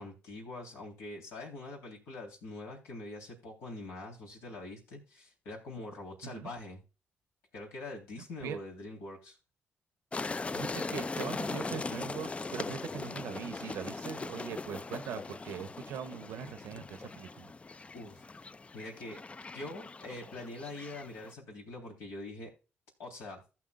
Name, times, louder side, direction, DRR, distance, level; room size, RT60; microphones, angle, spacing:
voice 1, 0.0-6.8 7.5-9.4 17.9-18.2 18.7-19.2 19.5-22.5 23.0-23.4, left 2 dB, 90° left, 3.4 m, -44 dB
sound 1, 10.1-21.3, left 3 dB, 25° left, 0.3 m, -40 dB
voice 2, 10.5-17.5, right 8 dB, 85° right, 0.8 m, -41 dB
15.5 x 6.0 x 2.4 m
supercardioid pair, 65°, 5 cm